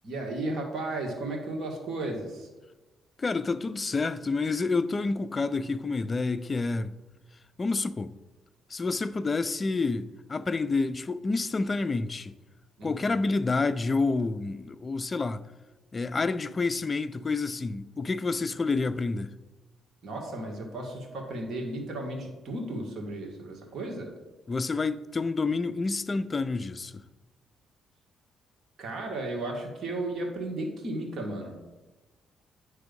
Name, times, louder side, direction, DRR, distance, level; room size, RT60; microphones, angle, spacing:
voice 1, 0.0-2.5 12.8-13.1 20.0-24.1 28.8-31.5, right 2 dB, 60° right, 1.8 m, -34 dB
voice 2, 3.2-6.9 7.6-8.1 8.7-12.3 12.8-15.4 15.9-19.3 24.5-27.0, left 3 dB, 30° left, 0.4 m, -28 dB
9.2 x 3.4 x 5.3 m
cardioid pair, 90°, 0 cm